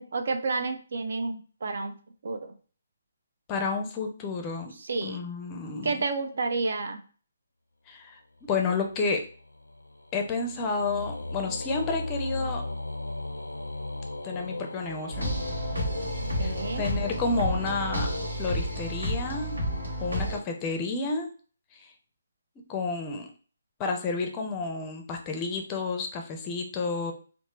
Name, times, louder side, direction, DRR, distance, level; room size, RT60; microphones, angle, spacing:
voice 1, 0.0-1.9 2.2-2.5 4.8-5.2 5.8-7.0 16.4-16.8, right 3 dB, 55° right, 6 dB, 0.4 m, -30 dB
voice 2, 3.5-4.7 5.0-6.0 7.9-9.2 10.1-12.6 14.2-15.3 16.4-18.1 18.4-19.6 20.0-21.3 21.7-21.9 22.7-23.3 23.8-27.1, left 4 dB, 20° left, 3 dB, 0.5 m, -30 dB
sound 1, 8.5-19.4, left 2 dB, 80° left, 0.4 m, -37 dB
sound 2, 15.1-20.4, equal, 80° right, 1.3 m, -31 dB
3.1 x 2.1 x 2.9 m, 0.39 s
figure-of-eight pair, 140°, 0 cm